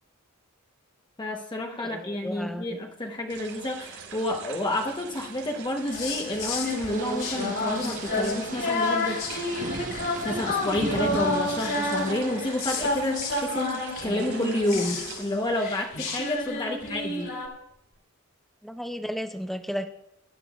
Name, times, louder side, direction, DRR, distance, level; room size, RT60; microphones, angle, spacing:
voice 1, 1.2-9.2 9.5-9.8 10.2-17.3, left 1 dB, 20° left, 1 dB, 1.0 m, -30 dB
voice 2, 1.8-2.7 16.6-16.8 18.6-19.9, equal, ahead, 7 dB, 0.7 m, -34 dB
sound 1, 3.3-16.5 16.8-17.9, right 5 dB, 65° right, 5.4 m, -43 dB
sound 2, 5.9-17.5, left 2 dB, 65° left, 3.4 m, -30 dB
sound 3, 6.9-12.1, right 2 dB, 40° right, 1.1 m, -37 dB
22.5 x 11.5 x 2.4 m, 0.80 s
head